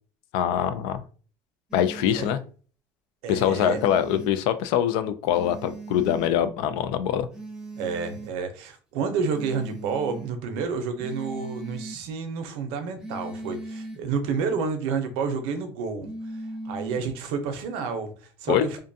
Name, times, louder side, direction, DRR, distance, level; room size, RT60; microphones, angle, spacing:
voice 1, 0.3-1.0 1.7-2.4 3.3-7.3 18.5-18.7, left 10 dB, 80° left, 11 dB, 0.4 m, -24 dB
sound 1, 1.7-2.3 3.3-4.3 5.3-6.3 7.3-8.3 9.3-10.3 11.0-12.0 13.0-14.0 16.0-17.1, right 2 dB, 5° right, 0.7 m, -38 dB
voice 2, 3.2-3.8 7.7-16.1 16.6-18.1 18.4-18.8, right 5 dB, 85° right, 7 dB, 0.6 m, -29 dB
2.5 x 2.2 x 2.6 m, 0.40 s
cardioid pair, 120°, 9 cm